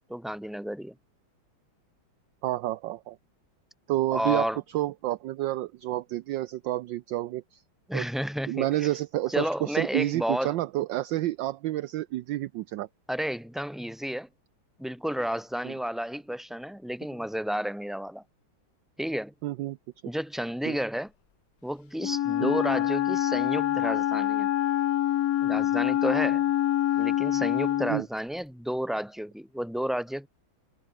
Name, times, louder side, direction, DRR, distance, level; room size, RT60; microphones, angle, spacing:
voice 1, 0.1-1.0 4.1-4.6 7.9-8.9 9.3-10.6 13.1-14.3 14.8-18.2 19.0-19.3 20.0-21.1 21.6-24.5 25.4-26.4 26.9-30.3, equal, ahead, 4.5 m, -31 dB
voice 2, 2.4-3.2 3.9-4.5 4.7-7.6 7.9-8.0 8.5-12.9 15.6-15.7 19.4-19.8 20.7-20.8 22.4-22.6 27.9-28.1, right 15 dB, 70° right, 1.2 m, -29 dB
Wind instrument woodwind instrument, 22.0-28.0, left 12 dB, 65° left, 0.9 m, -26 dB
omnidirectional pair, 2.3 m